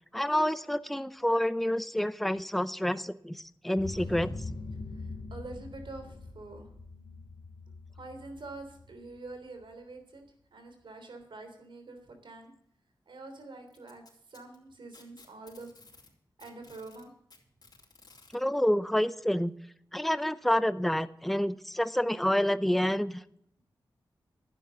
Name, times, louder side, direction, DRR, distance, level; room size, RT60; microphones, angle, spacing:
voice 1, 0.1-4.3 18.3-19.5 19.9-23.2, left 1 dB, ahead, 14 dB, 0.6 m, -28 dB
sound 1, 3.8-9.3, left 3 dB, 80° left, 2.7 m, -42 dB
voice 2, 4.9-6.7 7.9-10.2 10.5-12.5 13.1-14.0 14.3-15.7 16.4-17.1, right 2 dB, 75° right, 6 dB, 3.4 m, -46 dB
Packing tape duct tape, 13.7-16.1 16.4-18.4 19.5-19.6 20.1-20.2 21.1-21.2, left 3 dB, 55° left, 3.8 m, -56 dB
11.5 x 9.4 x 7.0 m, 0.69 s
cardioid pair, 60°, 8 cm